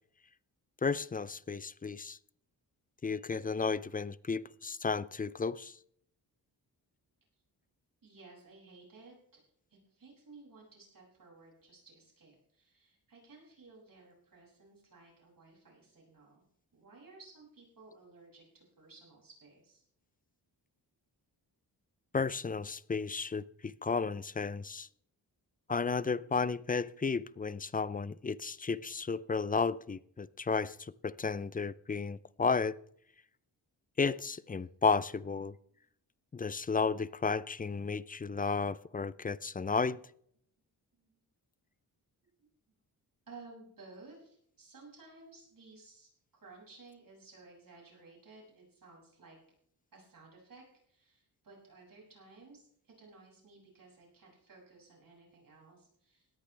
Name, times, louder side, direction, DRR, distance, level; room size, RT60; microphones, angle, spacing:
voice 1, 0.8-2.2 3.0-5.8 22.1-24.9 25.7-32.8 34.0-35.5 36.3-40.0, left 4 dB, 20° left, 0.5 m, -33 dB
voice 2, 8.0-9.4 9.7-16.4 16.7-19.8 40.9-41.2 43.3-46.1 46.4-49.4 49.9-56.4, right 3 dB, 55° right, 7.0 m, -56 dB
18.0 x 13.5 x 3.4 m
cardioid pair, 75°, 41 cm